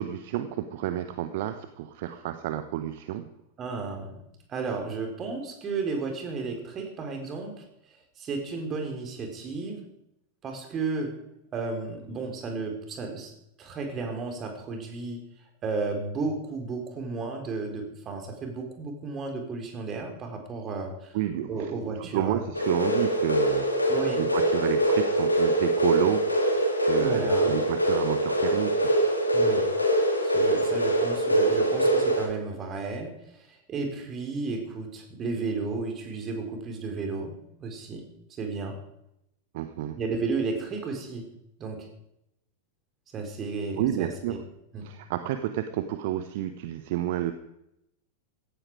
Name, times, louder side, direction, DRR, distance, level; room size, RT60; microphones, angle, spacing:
voice 1, 0.0-3.3 21.1-21.7 22.0-28.9 39.5-40.0 43.8-44.4 44.8-47.3, right 12 dB, 50° right, 10 dB, 1.0 m, -30 dB
voice 2, 3.6-4.2 4.5-7.6 8.2-9.9 10.4-11.2 11.5-21.2 21.5-22.4 23.9-24.2 27.0-27.6 29.3-29.7 30.2-38.8 40.0-41.3 41.6-41.9 43.1-44.4 44.7-44.9, right 4 dB, 25° right, 4 dB, 4.2 m, -33 dB
sound 1, 22.5-32.3, right 1 dB, 85° left, 2.8 m, -24 dB
16.5 x 15.0 x 4.9 m, 0.80 s
figure-of-eight pair, 90°, 0 cm